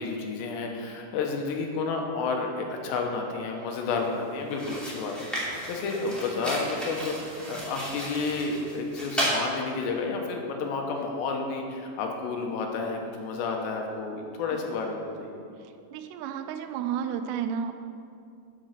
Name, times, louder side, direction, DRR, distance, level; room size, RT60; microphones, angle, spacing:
voice 1, 0.0-15.3, left 4 dB, 85° left, 2 dB, 3.2 m, -31 dB
sound 1, 3.9-4.1 4.5-9.4, equal, ahead, 1.2 m, -34 dB
voice 2, 15.9-17.7, right 8 dB, 90° right, 8 dB, 2.8 m, -31 dB
11.5 x 5.3 x 6.6 m, 2.4 s
omnidirectional pair, 4.9 m